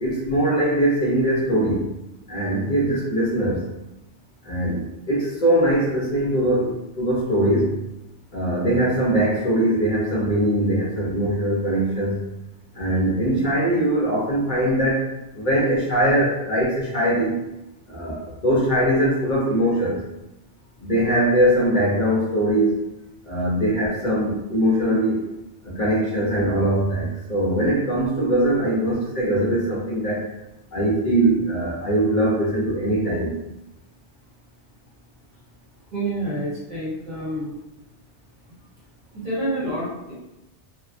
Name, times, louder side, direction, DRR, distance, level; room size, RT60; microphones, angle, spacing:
voice 1, 0.0-1.9 2.3-3.7 4.4-7.8 8.3-12.2 12.7-15.1 15.3-17.4 17.9-20.0 20.8-22.8 23.2-25.2 25.6-30.3 30.7-33.4, right 1 dB, 50° left, -6 dB, 0.6 m, -21 dB
voice 2, 35.9-37.5 39.1-40.1, right 1 dB, 45° right, -8 dB, 1.0 m, -28 dB
2.8 x 2.1 x 2.4 m, 0.92 s
omnidirectional pair, 1.1 m